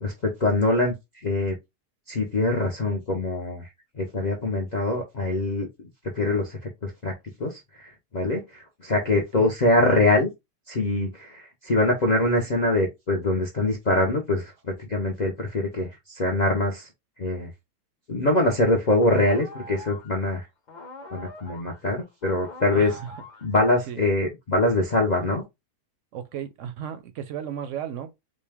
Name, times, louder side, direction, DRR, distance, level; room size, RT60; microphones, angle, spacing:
voice 1, 0.0-1.5 2.1-3.7 4.0-5.9 6.1-7.1 7.4-10.3 10.7-16.9 17.2-17.5 18.1-20.5 21.1-22.9 23.4-25.4, left 2 dB, 65° left, 0.4 m, -24 dB
sound 1, 18.5-20.4 20.7-23.8, left 2 dB, 40° left, 0.7 m, -43 dB
voice 2, 22.7-23.2 23.9-24.0 26.1-28.1, right 9 dB, 70° right, 0.7 m, -35 dB
4.1 x 2.2 x 3.3 m
omnidirectional pair, 1.7 m